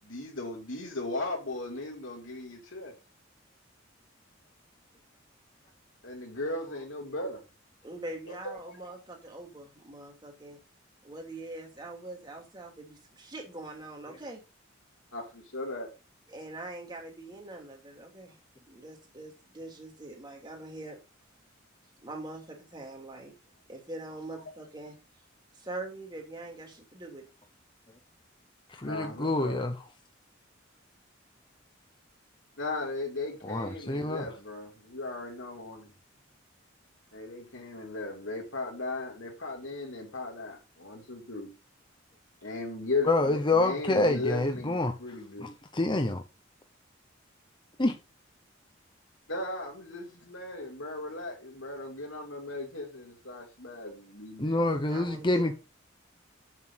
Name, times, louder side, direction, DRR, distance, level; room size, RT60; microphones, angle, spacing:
voice 1, 0.0-2.9 6.0-7.4 8.3-9.0 15.1-15.9 28.8-29.6 32.6-35.9 37.1-41.5 42.4-45.5 49.3-54.8, left 2 dB, 75° left, 3.2 m, -37 dB
voice 2, 7.8-10.6 11.0-14.4 16.3-18.4 18.7-21.0 22.0-23.3 23.7-25.0 25.5-27.3 54.9-55.5, right 2 dB, 20° right, 2.8 m, -43 dB
voice 3, 28.7-29.7 33.4-34.3 43.1-44.9 45.4-46.2 47.8-48.0 54.4-55.5, left 2 dB, 25° left, 0.9 m, -27 dB
8.4 x 7.5 x 4.1 m
head